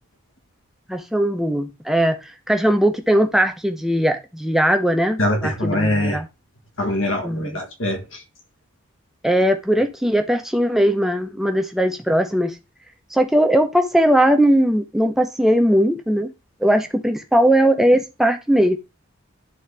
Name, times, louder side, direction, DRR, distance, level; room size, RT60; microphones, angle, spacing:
voice 1, 0.9-2.2 2.5-6.3 7.2-7.6 9.2-12.6 13.1-16.3 16.6-18.8, equal, ahead, 0.6 m, -19 dB
voice 2, 5.2-6.2 6.8-8.2, left 1 dB, 65° left, 1.5 m, -23 dB
10.5 x 3.9 x 3.3 m
head